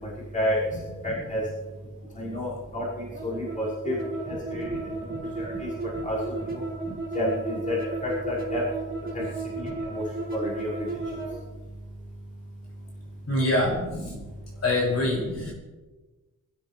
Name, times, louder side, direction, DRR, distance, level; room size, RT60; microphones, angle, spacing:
voice 1, 0.0-0.6 1.0-1.4 2.2-4.0 4.3-4.7 5.0-5.7 6.0-6.2 6.5-6.6 7.1-8.7 9.1-9.2 9.6-10.0 10.3-10.7 13.6-14.2 15.1-15.5, left 1 dB, 25° left, -9 dB, 5.5 m, -30 dB
sound 1, 3.1-11.4, right 3 dB, 35° right, 3.6 m, -34 dB
voice 2, 13.2-14.0 14.5-15.5, left 1 dB, 50° left, -4 dB, 6.3 m, -26 dB
24.5 x 13.5 x 3.4 m, 1.2 s
wide cardioid pair, 170°, 33 cm